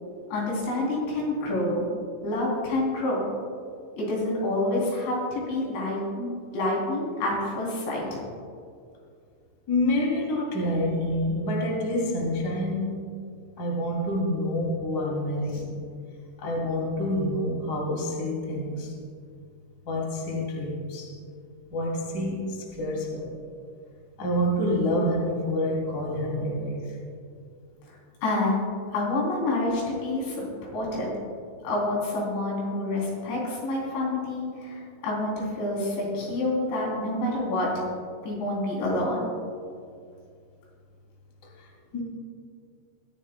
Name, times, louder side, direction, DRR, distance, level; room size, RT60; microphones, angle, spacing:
voice 1, 0.3-1.9 2.2-3.2 4.0-6.3 6.5-8.2 28.2-28.6 28.9-30.4 30.7-31.2 31.6-37.9 38.2-39.2, left 2 dB, 70° left, -4 dB, 5.5 m, -28 dB
voice 2, 9.7-13.1 13.6-15.7 16.4-18.9 19.9-21.1 21.7-23.3 24.2-27.0 41.6-42.0, left 1 dB, 30° left, -2 dB, 2.1 m, -27 dB
23.0 x 14.0 x 2.2 m, 2.3 s
omnidirectional pair, 5.4 m